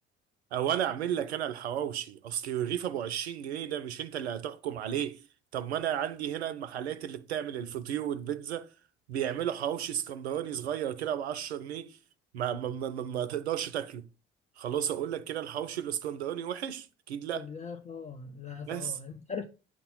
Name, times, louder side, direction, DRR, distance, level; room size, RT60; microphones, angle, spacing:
voice 1, 0.5-5.2 5.5-8.7 9.1-12.0 12.3-14.1 14.6-17.5 18.6-19.0, right 10 dB, 80° right, 0.5 m, -33 dB
voice 2, 17.3-19.4, left 5 dB, 20° left, 0.5 m, -40 dB
8.4 x 2.9 x 5.3 m
figure-of-eight pair, 45°, 32 cm